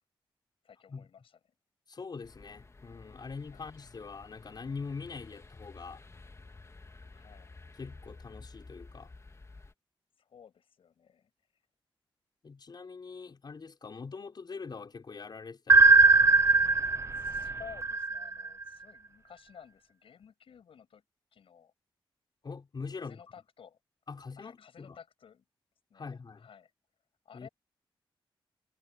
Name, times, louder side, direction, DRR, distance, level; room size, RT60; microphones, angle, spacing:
voice 1, 0.6-1.4 3.5-3.6 7.1-7.6 10.2-11.3 17.2-21.0 21.3-21.7 22.9-23.8 24.4-25.4 25.9-26.7 27.2-27.5, left 7 dB, 80° left, 7.7 m, -54 dB
voice 2, 1.9-6.0 7.7-9.1 12.4-16.3 22.4-23.2 24.1-25.0 25.9-26.5 27.3-27.5, left 4 dB, 50° left, 5.6 m, -43 dB
sound 1, 2.2-9.7, left 3 dB, 30° left, 2.6 m, -52 dB
sound 2, 15.7-18.6, right 4 dB, 30° right, 0.7 m, -21 dB
cardioid pair, 75°, 9 cm